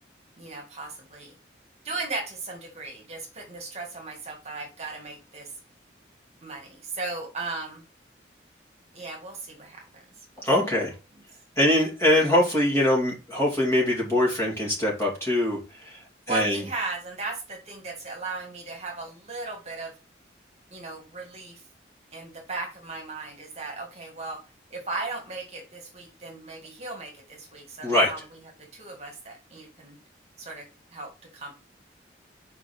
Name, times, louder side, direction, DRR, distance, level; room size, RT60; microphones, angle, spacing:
voice 1, 0.4-1.3 1.8-5.5 6.4-7.8 8.9-9.8 10.4-10.5 16.3-19.9 20.7-21.6 22.1-24.4 24.7-28.4 28.7-30.0 30.4-30.6 30.9-31.6, right 3 dB, 35° right, 0 dB, 1.8 m, -36 dB
voice 2, 10.4-10.9 11.6-15.6 15.8-16.0 16.3-16.6 27.8-28.1, left 1 dB, 15° left, -3 dB, 2.4 m, -22 dB
5.0 x 4.5 x 5.8 m, 0.31 s
head